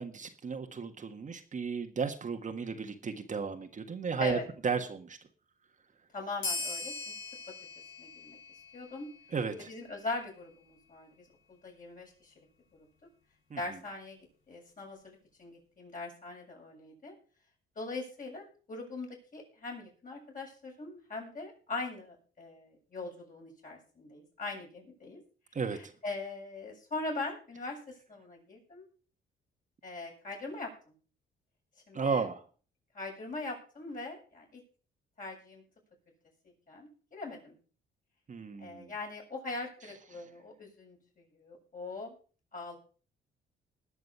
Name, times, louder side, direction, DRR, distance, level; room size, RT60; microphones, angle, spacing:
voice 1, 0.0-5.2 9.3-9.7 13.5-13.6 25.5-25.9 31.9-32.4 38.3-38.9 40.1-40.2, right 5 dB, 40° right, 5 dB, 1.6 m, -34 dB
voice 2, 6.1-7.1 8.0-8.4 8.7-9.1 9.7-12.3 12.7-12.9 13.6-14.2 14.5-17.1 17.8-25.2 25.7-28.9 29.8-30.9 31.9-32.3 32.9-34.6 35.2-35.6 36.4-37.6 38.6-42.1 42.5-42.8, left 3 dB, 45° left, -1 dB, 7.6 m, -41 dB
sound 1, 6.4-9.5, left 3 dB, 90° left, 4.9 m, -40 dB
20.0 x 6.7 x 5.6 m, 0.40 s
cardioid pair, 90°, 20 cm